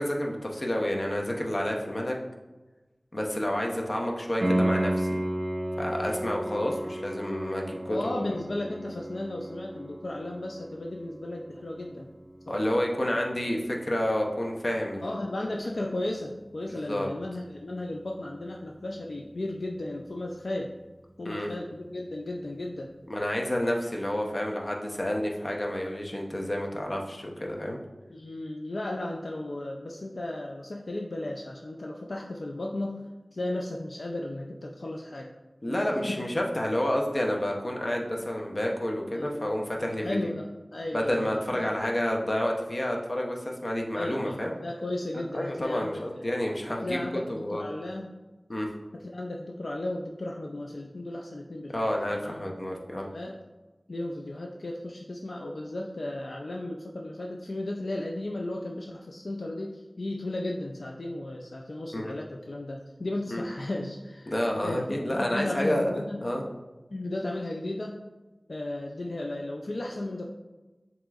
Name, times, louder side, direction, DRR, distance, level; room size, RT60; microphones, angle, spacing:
voice 1, 0.0-2.2 3.1-5.2 5.8-8.3 12.5-15.2 16.7-17.1 21.2-21.5 23.1-27.8 35.6-40.2 40.9-44.5 45.3-47.6 48.5-48.7 51.7-53.1 61.9-62.1 63.3-63.4 64.3-65.9 66.2-66.4, left 1 dB, 50° left, 0 dB, 0.7 m, -29 dB
Piano, 4.4-15.1 18.4-18.5, right 1 dB, 50° right, 0.6 m, -34 dB
voice 2, 7.9-12.1 12.5-12.7 15.0-20.7 21.2-22.9 28.1-33.0 33.3-35.3 35.7-35.8 36.0-36.2 39.1-39.5 40.0-41.7 44.0-46.2 46.8-48.1 48.9-52.4 52.7-53.4 53.9-64.3 64.6-66.2 66.9-68.0 68.5-70.3, left 1 dB, 80° left, 0 dB, 0.4 m, -35 dB
7.2 x 2.9 x 2.4 m, 1.1 s
wide cardioid pair, 40°, 0 cm